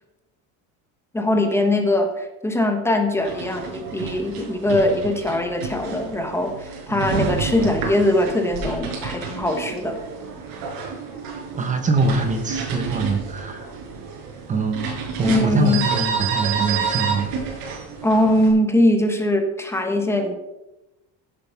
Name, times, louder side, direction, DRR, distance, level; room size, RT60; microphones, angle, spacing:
voice 1, 1.1-10.0 15.2-15.8 18.0-20.3, left 1 dB, 5° left, 5 dB, 1.1 m, -21 dB
sound 1, 3.2-18.5, right 5 dB, 75° right, 5.0 m, -30 dB
voice 2, 11.6-13.7 14.5-14.9 15.2-17.3, right 3 dB, 20° right, 6 dB, 1.0 m, -23 dB
16.0 x 7.5 x 5.7 m, 0.99 s
cardioid pair, 180°, 36 cm